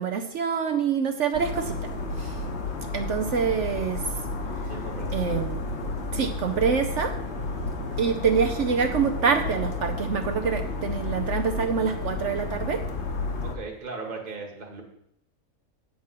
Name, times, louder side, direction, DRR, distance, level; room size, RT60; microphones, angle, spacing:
voice 1, 0.0-1.9 2.2-2.4 2.9-4.0 5.1-5.6 6.1-7.1 8.0-12.8, right 6 dB, 60° right, 5 dB, 1.0 m, -26 dB
sound 1, 1.3-13.6, left 3 dB, 50° left, 1.4 m, -31 dB
voice 2, 4.7-5.2 7.2-7.8 13.4-14.8, right 4 dB, 35° right, 1 dB, 1.7 m, -38 dB
9.0 x 7.5 x 5.7 m, 0.74 s
omnidirectional pair, 1.5 m